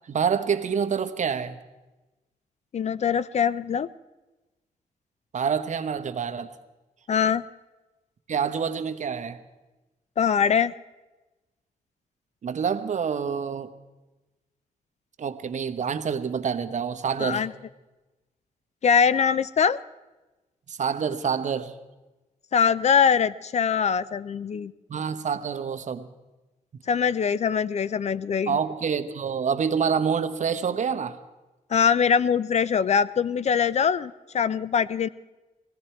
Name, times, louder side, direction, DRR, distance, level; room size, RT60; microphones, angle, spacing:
voice 1, 0.1-1.6 5.3-6.5 8.3-9.4 12.4-13.7 15.2-17.4 20.7-21.7 24.9-26.1 28.5-31.2, right 6 dB, 55° right, 10 dB, 1.1 m, -27 dB
voice 2, 2.7-3.9 7.1-7.4 10.2-10.7 17.2-17.5 18.8-19.8 22.5-24.7 26.9-28.6 31.7-35.1, left 7 dB, 50° left, 17 dB, 0.5 m, -22 dB
19.0 x 16.5 x 4.5 m, 1.1 s
cardioid pair, 75°, 15 cm